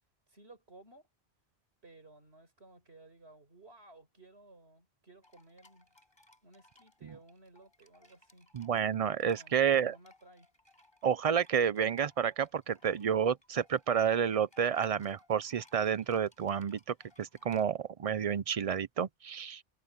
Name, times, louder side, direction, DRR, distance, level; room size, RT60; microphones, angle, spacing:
voice 1, 0.3-1.1 1.8-5.9 6.4-8.5 9.3-10.5, right 2 dB, 85° right, 5.0 m, -57 dB
sound 1, 5.2-17.6, left 1 dB, 25° left, 5.0 m, -65 dB
voice 2, 8.5-10.0 11.0-16.8 17.2-19.6, right 8 dB, 50° right, 0.5 m, -30 dB
omnidirectional pair, 1.0 m